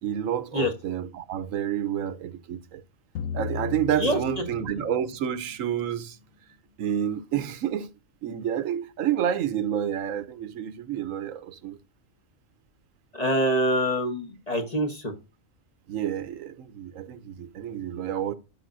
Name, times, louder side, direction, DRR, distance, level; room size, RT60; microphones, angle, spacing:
voice 1, 0.0-2.8 3.3-6.2 6.8-7.9 8.2-11.8 15.9-18.3, right 10 dB, 85° right, 1.1 m, -29 dB
sound 1, 3.2-5.4, left 6 dB, 85° left, 1.1 m, -35 dB
voice 2, 3.9-4.4 13.1-15.1, equal, 30° left, 1.3 m, -25 dB
12.0 x 4.9 x 2.6 m
omnidirectional pair, 1.4 m